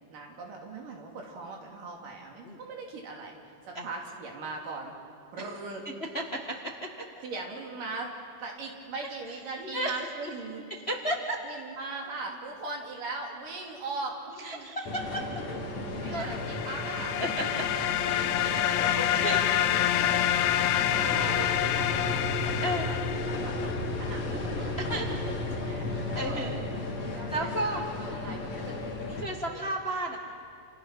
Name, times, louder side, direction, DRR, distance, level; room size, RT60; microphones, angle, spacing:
voice 1, 0.1-3.4 3.6-4.9 5.3-5.8 7.2-8.1 8.4-10.7 11.4-14.7 15.2-15.3 16.0-17.2 18.2-19.2 20.5-23.0 23.3-23.5 24.0-26.5 27.0-27.5 28.0-29.7, right 3 dB, 80° right, 0 dB, 4.6 m, -40 dB
voice 2, 6.1-6.9 9.7-10.0 10.7-11.4 14.4-15.2 16.1-16.3 17.2-17.7 18.4-19.5 20.5-21.5 22.6-22.9 24.8-25.1 26.1-26.6 27.0-27.8 29.2-30.2, right 1 dB, 30° left, 1 dB, 1.1 m, -33 dB
sound 1, 14.9-29.2, left 2 dB, 55° left, 3.7 m, -34 dB
sound 2, 16.1-23.8, left 12 dB, 85° left, 2.4 m, -28 dB
29.0 x 28.0 x 6.0 m, 2.6 s
omnidirectional pair, 3.8 m